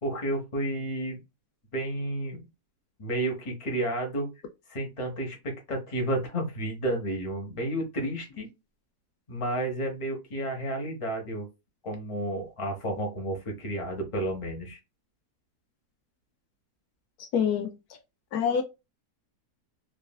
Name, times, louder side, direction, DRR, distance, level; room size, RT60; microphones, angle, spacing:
voice 1, 0.0-1.2 1.7-2.4 3.0-4.3 4.7-8.5 9.3-11.5 11.8-14.8, right 1 dB, 25° left, 0.8 m, -31 dB
voice 2, 17.3-17.7 18.3-18.6, left 7 dB, 75° left, 1.1 m, -25 dB
3.1 x 2.5 x 2.2 m
omnidirectional pair, 1.7 m